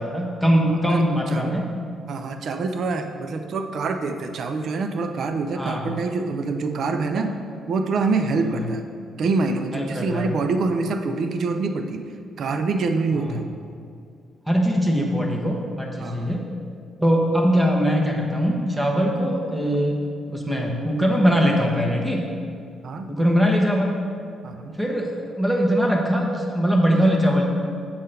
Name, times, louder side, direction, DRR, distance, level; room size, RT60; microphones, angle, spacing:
voice 1, 0.0-1.7 5.5-5.9 7.1-7.2 8.5-8.7 9.7-10.3 13.1-13.4 14.5-16.4 17.0-20.0 20.3-22.3 23.1-24.0 24.8-27.5, equal, 10° right, 0 dB, 1.1 m, -21 dB
voice 2, 0.7-1.6 2.1-7.4 7.7-8.8 9.2-12.1 12.4-13.5 16.0-16.3 22.8-23.1 24.4-24.8, right 3 dB, 60° right, 7 dB, 0.4 m, -26 dB
7.8 x 3.7 x 5.6 m, 2.3 s
cardioid pair, 90°, 0 cm